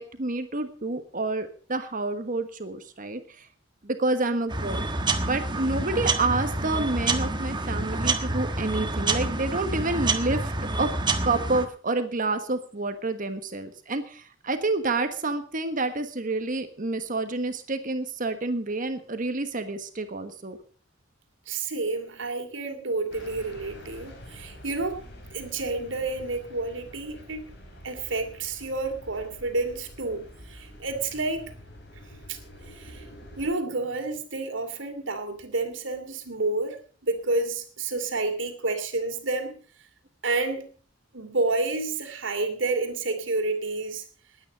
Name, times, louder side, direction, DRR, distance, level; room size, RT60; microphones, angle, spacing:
voice 1, 0.0-3.5 3.8-4.9 5.2-10.5 10.8-10.9 11.2-20.6, right 2 dB, 45° right, 8 dB, 1.4 m, -28 dB
sound 1, 4.5-11.6, right 2 dB, 25° right, 1.4 m, -28 dB
voice 2, 21.5-25.0 25.3-27.4 27.8-31.4 32.3-32.4 32.7-33.1 33.4-36.8 37.0-39.6 40.2-40.6 41.1-44.1, right 3 dB, 85° right, 7 dB, 2.7 m, -29 dB
sound 2, 23.1-33.5, equal, 60° left, 4.8 m, -47 dB
20.0 x 9.3 x 5.2 m, 0.42 s
head